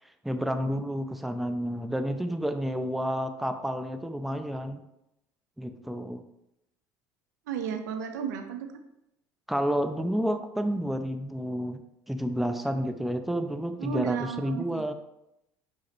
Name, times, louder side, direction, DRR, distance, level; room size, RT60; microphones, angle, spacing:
voice 1, 0.2-4.8 5.6-6.2 9.5-11.8 12.1-14.9, equal, ahead, 7 dB, 0.4 m, -30 dB
voice 2, 7.5-8.7 13.8-14.8, right 7 dB, 85° right, 6 dB, 0.4 m, -33 dB
4.9 x 2.0 x 4.3 m, 0.86 s
hypercardioid pair, 75°, 9 cm